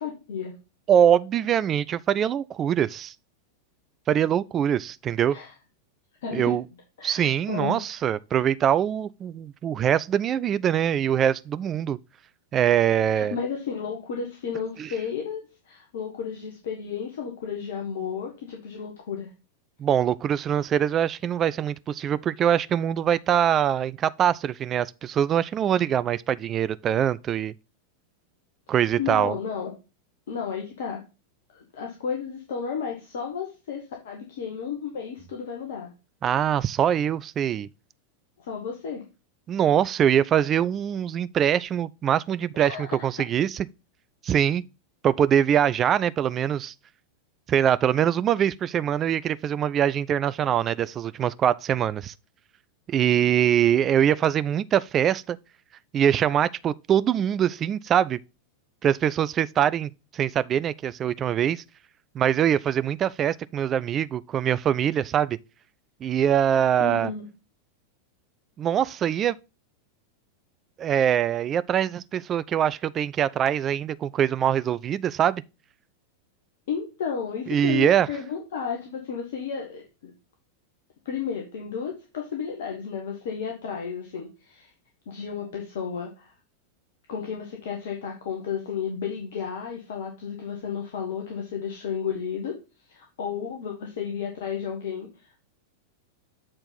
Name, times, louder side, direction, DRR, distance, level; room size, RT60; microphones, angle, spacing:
voice 1, 0.0-0.5 5.3-5.5 6.2-6.6 7.0-8.0 13.0-19.3 29.0-29.7 30.3-31.0 31.5-35.9 38.4-39.0 42.6-43.0 66.8-67.3 76.7-80.1 81.0-84.7 85.1-86.3 87.1-92.6 92.9-95.4, left 6 dB, 55° left, 1.4 m, -33 dB
voice 2, 0.9-3.1 4.1-5.4 6.3-6.6 7.0-12.0 12.5-13.3 14.8-14.9 19.8-27.5 28.7-29.4 36.2-37.7 39.5-43.7 44.2-44.6 45.0-46.7 47.5-52.1 52.9-55.4 55.9-58.2 58.8-61.6 62.2-65.4 66.0-67.1 68.6-69.4 70.8-75.4 77.5-78.1, right 9 dB, 25° right, 0.3 m, -23 dB
7.5 x 4.4 x 3.9 m
figure-of-eight pair, 90°, 0 cm